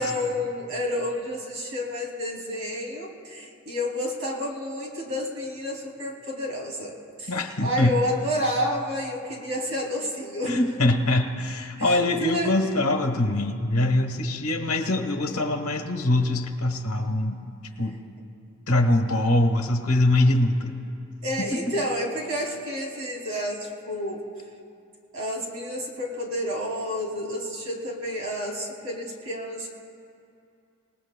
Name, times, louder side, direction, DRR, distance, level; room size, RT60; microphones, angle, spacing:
voice 1, 0.0-7.3 7.6-10.6 11.8-12.5 21.2-24.2 25.1-29.7, left 1 dB, 65° right, -1 dB, 2.6 m, -30 dB
voice 2, 7.3-8.0 10.5-17.4 17.8-18.0 18.7-20.8 21.4-21.7, left 1 dB, 70° left, 6 dB, 1.2 m, -23 dB
27.5 x 19.0 x 2.2 m, 2.5 s
head